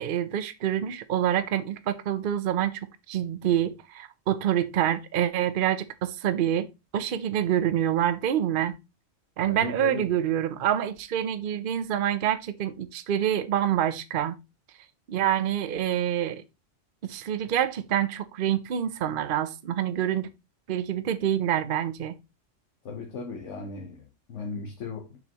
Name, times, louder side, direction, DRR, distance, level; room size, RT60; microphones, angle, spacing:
voice 1, 0.0-2.7 3.1-6.6 6.9-8.7 9.4-14.4 15.1-16.4 17.0-20.3 20.7-22.2, right 10 dB, 50° right, 0.8 m, -26 dB
voice 2, 9.5-10.1 22.8-25.2, left 4 dB, 70° left, 1.3 m, -37 dB
6.8 x 6.4 x 2.9 m
omnidirectional pair, 1.3 m